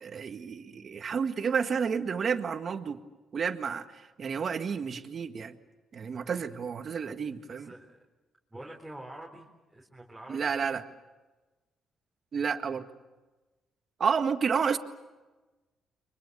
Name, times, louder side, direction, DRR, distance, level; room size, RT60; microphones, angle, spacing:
voice 1, 0.0-3.0 3.3-5.6 5.9-7.7 10.3-10.8 12.3-12.9 14.0-14.8, right 6 dB, 50° right, 7 dB, 1.9 m, -30 dB
voice 2, 7.5-8.0 8.5-10.5, right 1 dB, 5° right, -2 dB, 4.2 m, -46 dB
30.0 x 24.0 x 6.9 m, 1.2 s
cardioid pair, 90°, 0 cm